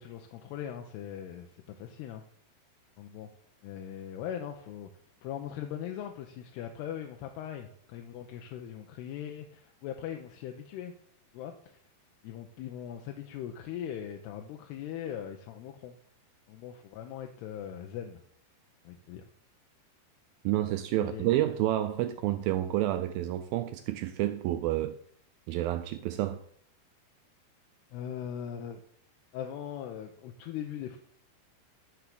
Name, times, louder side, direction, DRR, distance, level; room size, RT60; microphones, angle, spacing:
voice 1, 0.0-2.2 3.0-3.3 3.6-4.9 5.2-10.9 11.3-11.8 12.2-16.0 16.5-18.2 18.8-19.2 21.0-21.3 27.9-28.8 29.3-31.0, left 9 dB, 85° left, 2.8 m, -40 dB
voice 2, 20.5-25.0 25.5-26.4, right 13 dB, 85° right, 2.1 m, -29 dB
12.0 x 4.8 x 6.7 m
omnidirectional pair, 4.7 m